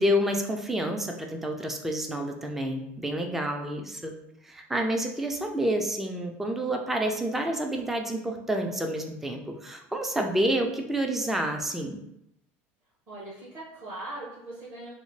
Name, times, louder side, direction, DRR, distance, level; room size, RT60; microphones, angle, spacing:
voice 1, 0.0-4.1 4.4-12.0, equal, 5° right, 3 dB, 0.3 m, -29 dB
voice 2, 13.1-14.9, right 2 dB, 35° right, -9 dB, 1.5 m, -40 dB
3.8 x 2.1 x 3.1 m, 0.79 s
supercardioid pair, 130°, 6 cm